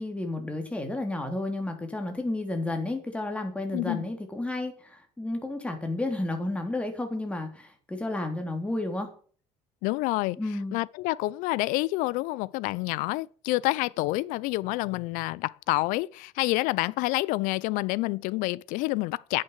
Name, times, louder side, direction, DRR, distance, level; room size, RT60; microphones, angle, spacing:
voice 1, 0.0-9.1 10.4-10.8, left 2 dB, 10° left, 3.7 m, -32 dB
voice 2, 3.7-4.0 9.8-10.4 10.7-19.4, left 20 dB, 85° left, 0.6 m, -28 dB
10.5 x 9.0 x 8.2 m
cardioid pair, 120°, 13 cm